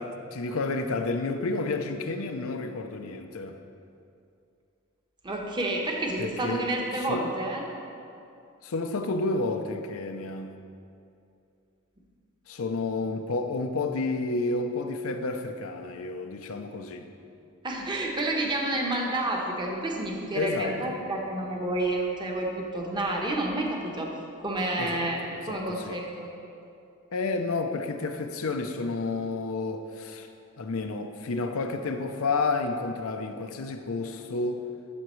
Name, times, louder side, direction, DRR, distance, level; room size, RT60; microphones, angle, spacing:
voice 1, 0.0-3.6 6.2-6.7 6.9-7.3 8.6-10.5 12.5-17.1 20.3-21.0 24.8-26.0 27.1-30.3 30.6-34.6, left 3 dB, 70° left, 5 dB, 0.6 m, -31 dB
voice 2, 5.2-7.6 17.6-24.1 24.4-25.2 25.5-26.3, right 1 dB, 20° right, -1 dB, 1.0 m, -29 dB
13.5 x 7.0 x 3.1 m, 2.6 s
head